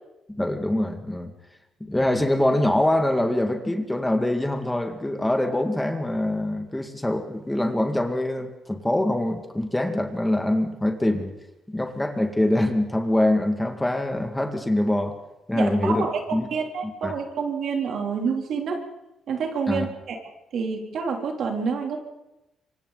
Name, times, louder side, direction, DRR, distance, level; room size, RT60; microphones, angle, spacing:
voice 1, 0.3-1.3 1.8-11.3 11.7-15.2 15.5-16.5 17.0-17.1 19.7-19.9, left 1 dB, 10° left, 5 dB, 2.2 m, -24 dB
voice 2, 15.5-16.2 16.5-18.8 19.3-20.2 20.5-22.0, right 5 dB, 65° right, 2 dB, 3.4 m, -28 dB
25.5 x 24.5 x 4.1 m, 0.94 s
cardioid pair, 90°, 0 cm